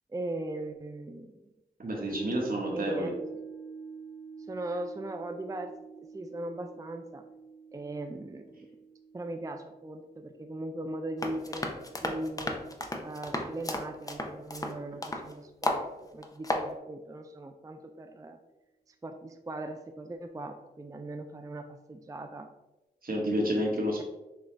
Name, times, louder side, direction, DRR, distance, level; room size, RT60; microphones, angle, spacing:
voice 1, 0.1-1.3 2.7-3.2 4.5-5.7 6.1-7.2 7.7-8.4 9.1-11.7 12.0-12.6 13.0-15.8 16.1-18.4 18.9-22.5, right 1 dB, 20° right, 5 dB, 0.3 m, -39 dB
voice 2, 1.8-3.1 23.0-24.0, equal, 60° right, -1 dB, 1.3 m, -29 dB
sound 1, 2.1-12.5 12.8-12.9, right 4 dB, 85° left, 0.7 m, -47 dB
sound 2, 11.2-15.3 15.6-15.9 16.2-16.7, left 1 dB, 20° left, 0.6 m, -33 dB
6.2 x 2.3 x 3.2 m, 1.1 s
cardioid pair, 55°, 17 cm